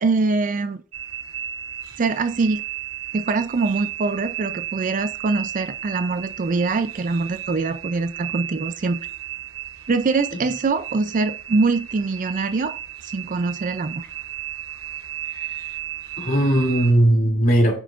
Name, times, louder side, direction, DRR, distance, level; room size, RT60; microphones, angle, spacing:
voice 1, 0.0-0.8 2.0-2.6 3.1-9.0 9.9-12.8 13.0-14.1, right 3 dB, 35° right, 0.4 m, -23 dB
sound 1, 0.9-16.9, right 12 dB, 65° right, 0.9 m, -34 dB
voice 2, 15.3-15.6 16.2-17.8, right 1 dB, 40° left, 2.6 m, -19 dB
8.8 x 5.6 x 2.4 m
head